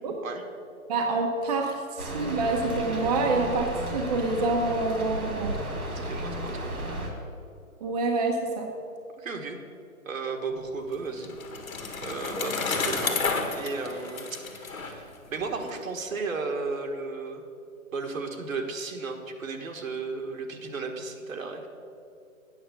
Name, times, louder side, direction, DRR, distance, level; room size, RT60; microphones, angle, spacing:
voice 1, 0.9-5.6 7.8-8.7, right 3 dB, 30° right, 1 dB, 0.9 m, -27 dB
Rain, 2.0-7.1, right 1 dB, 85° right, 2.8 m, -33 dB
voice 2, 5.9-6.8 9.2-9.6 10.0-11.7 12.0-17.4 17.9-21.7, right 4 dB, 70° right, 4 dB, 1.5 m, -34 dB
Bicycle, 10.6-15.7, left 4 dB, 70° left, 1.7 m, -31 dB
9.0 x 6.6 x 6.7 m, 2.4 s
hypercardioid pair, 150°, 43 cm